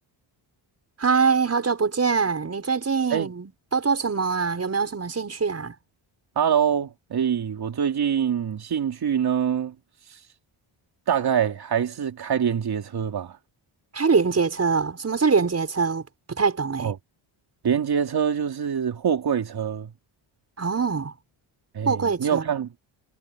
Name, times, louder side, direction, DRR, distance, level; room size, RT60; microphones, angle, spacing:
voice 1, 1.0-5.7 13.9-16.9 20.6-21.1 21.8-22.4, right 5 dB, 30° right, 6.8 m, -23 dB
voice 2, 6.4-9.7 11.1-13.4 16.8-17.0 17.6-19.9 21.7-22.7, right 8 dB, 50° right, 3.0 m, -24 dB
wide cardioid pair, 155°, 48 cm